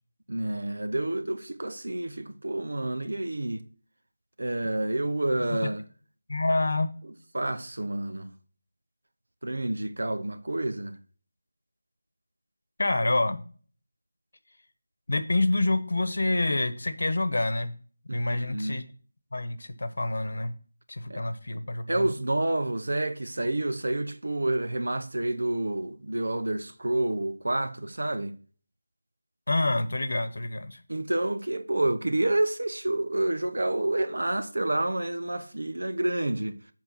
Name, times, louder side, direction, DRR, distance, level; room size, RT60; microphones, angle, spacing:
voice 1, 0.3-3.6 4.4-5.8 7.3-8.3 9.4-11.0 18.1-18.8 21.1-21.2 21.9-28.4 30.9-36.6, right 1 dB, 90° right, 1.0 m, -29 dB
voice 2, 5.4-5.7 6.3-6.9 12.8-13.4 15.1-17.7 18.1-18.8 19.3-20.5 20.9-22.1 29.5-30.8, left 2 dB, 60° left, 1.0 m, -27 dB
7.5 x 4.7 x 5.9 m
figure-of-eight pair, 180°, 0 cm